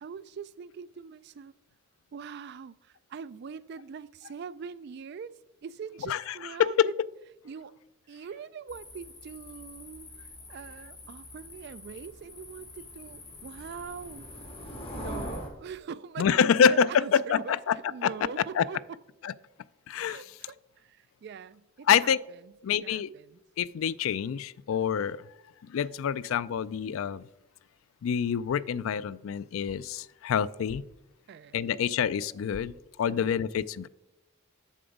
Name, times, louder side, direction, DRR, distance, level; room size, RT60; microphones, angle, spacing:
voice 1, 0.0-1.5 2.1-6.9 7.4-7.7 8.1-14.3 15.0-17.6 17.9-19.0 20.1-23.4 31.3-31.8 33.1-33.3, right 6 dB, 55° right, 0.3 m, -43 dB
sound 1, 8.7-15.5, left 1 dB, 30° left, 2.1 m, -43 dB
voice 2, 16.2-17.8 18.0-18.1 18.6-18.7 19.2-19.3 19.9-20.2 21.9-22.2 22.6-23.1 23.6-25.2 25.6-27.2 28.0-30.8 31.5-32.7 33.0-33.9, left 7 dB, 85° left, 0.3 m, -26 dB
7.3 x 6.9 x 5.1 m
head